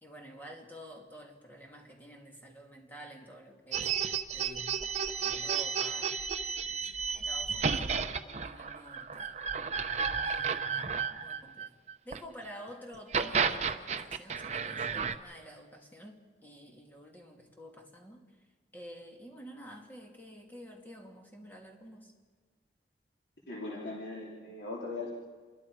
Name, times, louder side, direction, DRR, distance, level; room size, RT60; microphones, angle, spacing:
voice 1, 0.0-3.9 4.3-4.8 5.2-6.2 6.7-9.3 10.2-11.7 12.0-18.3 18.7-22.1, equal, 10° left, 0 dB, 2.6 m, -50 dB
sound 1, 3.7-12.2 12.9-15.1, right 6 dB, 40° right, 0.8 m, -32 dB
voice 2, 23.5-25.1, left 3 dB, 75° left, -4 dB, 3.1 m, -39 dB
28.0 x 22.0 x 4.9 m, 1.5 s
head